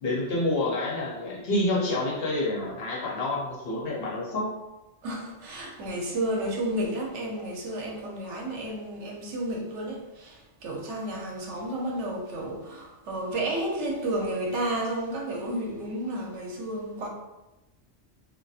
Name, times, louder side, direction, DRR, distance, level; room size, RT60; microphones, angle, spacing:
voice 1, 0.0-4.5, left 2 dB, 60° left, -3 dB, 0.7 m, -28 dB
voice 2, 5.0-17.1, right 1 dB, 75° right, -1 dB, 0.9 m, -32 dB
2.7 x 2.3 x 2.3 m, 1.0 s
omnidirectional pair, 1.2 m